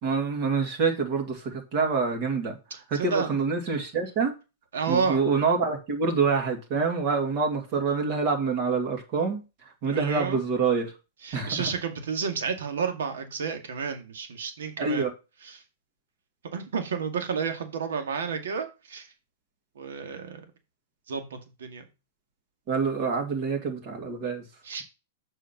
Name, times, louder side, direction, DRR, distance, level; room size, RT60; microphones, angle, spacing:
voice 1, 0.0-2.6 2.9-4.3 4.9-10.9 11.3-11.7 14.8-15.1 22.7-24.4, right 4 dB, 40° right, 2 dB, 2.3 m, -26 dB
voice 2, 2.7-3.3 4.7-5.2 9.9-10.4 11.2-15.1 15.4-15.6 16.5-19.1 19.8-20.4 21.1-21.9 24.6-24.8, right 6 dB, 90° right, 6 dB, 2.1 m, -31 dB
7.4 x 5.0 x 5.9 m, 0.29 s
supercardioid pair, 160°, 0 cm